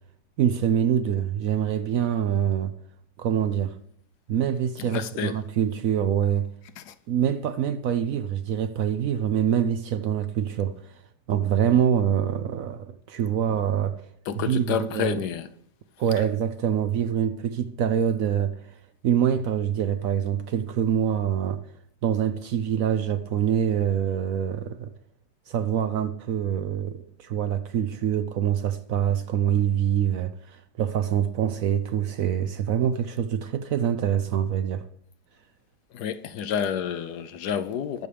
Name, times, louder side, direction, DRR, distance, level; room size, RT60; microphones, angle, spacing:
voice 1, 0.4-2.7 3.2-3.8 4.3-6.5 7.1-10.9 11.3-14.0 14.4-15.2 16.0-18.6 19.0-21.6 22.0-24.9 25.5-34.8, right 9 dB, 65° right, 0.9 m, -25 dB
voice 2, 4.8-5.4 6.8-6.9 13.5-13.6 14.3-15.5 35.9-38.1, left 8 dB, 75° left, 1.2 m, -29 dB
20.0 x 7.0 x 3.4 m
omnidirectional pair, 1.8 m